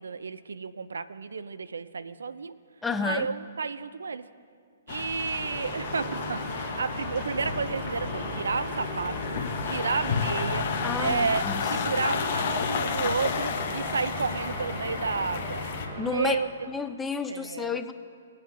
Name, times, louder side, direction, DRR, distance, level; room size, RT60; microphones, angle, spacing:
voice 1, 0.0-2.6 3.0-4.3 4.9-10.7 11.0-15.6 15.9-16.5 17.3-17.8, right 5 dB, 80° right, 15 dB, 0.4 m, -31 dB
voice 2, 2.8-3.3 10.8-11.7 16.0-17.9, left 4 dB, 10° left, 8 dB, 0.5 m, -31 dB
sound 1, 4.9-15.9, left 6 dB, 50° left, 1.1 m, -32 dB
sound 2, 5.2-16.7, right 1 dB, 40° right, 2.5 m, -37 dB
20.0 x 8.4 x 2.7 m, 2.2 s
hypercardioid pair, 130°, 0 cm